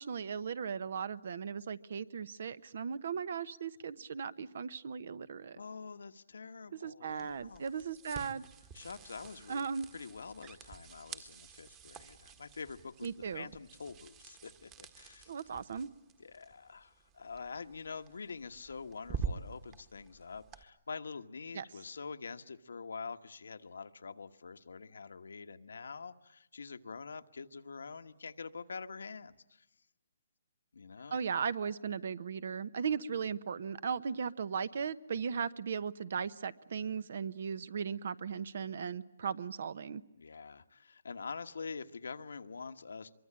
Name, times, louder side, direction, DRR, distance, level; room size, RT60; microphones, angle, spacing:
voice 1, 0.0-5.6 6.7-8.4 9.5-9.9 13.0-13.5 15.3-15.9 21.5-21.6 31.1-40.0, right 6 dB, 60° right, 18 dB, 1.0 m, -37 dB
voice 2, 5.5-7.7 8.7-9.6 9.9-13.1 13.3-15.3 16.2-29.6 30.7-31.2 40.2-43.1, left 5 dB, 90° left, 8 dB, 1.4 m, -46 dB
sound 1, 7.1-20.6, right 6 dB, 20° right, 1.5 m, -47 dB
24.5 x 23.5 x 8.8 m, 0.84 s
hypercardioid pair, 160°, 0 cm